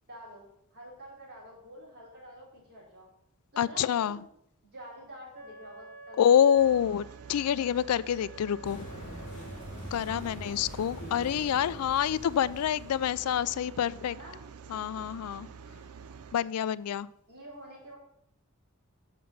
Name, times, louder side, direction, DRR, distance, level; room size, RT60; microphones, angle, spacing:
voice 1, 0.1-0.4 0.7-3.1 3.5-4.2 4.7-6.5 10.0-10.2 14.1-14.4 17.3-18.0, equal, 50° right, -4 dB, 3.7 m, -48 dB
voice 2, 3.6-4.2 6.2-8.9 9.9-14.2 14.7-15.5 16.3-17.1, left 9 dB, 85° left, 19 dB, 0.3 m, -27 dB
Wind instrument woodwind instrument, 5.3-9.8, right 2 dB, 35° right, 1.0 m, -50 dB
sound 1, 6.6-16.4, right 6 dB, 90° right, 0.5 m, -48 dB
sound 2, 8.6-13.7, equal, 35° left, 2.1 m, -44 dB
6.6 x 5.8 x 6.7 m, 0.73 s
head